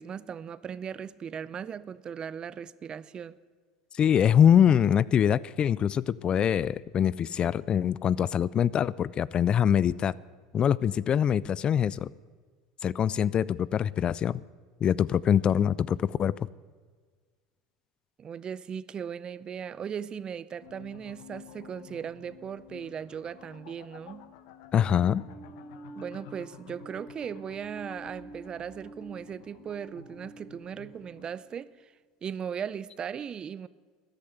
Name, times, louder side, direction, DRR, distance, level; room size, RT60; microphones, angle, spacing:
voice 1, 0.0-3.4 18.2-24.3 26.0-31.9 32.2-33.7, right 7 dB, 35° right, 0.5 m, -38 dB
voice 2, 3.9-10.1 10.5-12.1 12.8-14.4 14.8-16.3 24.7-25.3, left 9 dB, 35° left, 0.3 m, -24 dB
sound 1, 20.6-31.5, left 9 dB, 70° left, 1.0 m, -52 dB
sound 2, 25.1-31.6, right 2 dB, 5° right, 1.9 m, -48 dB
13.5 x 10.5 x 8.0 m
supercardioid pair, 95°, 3 cm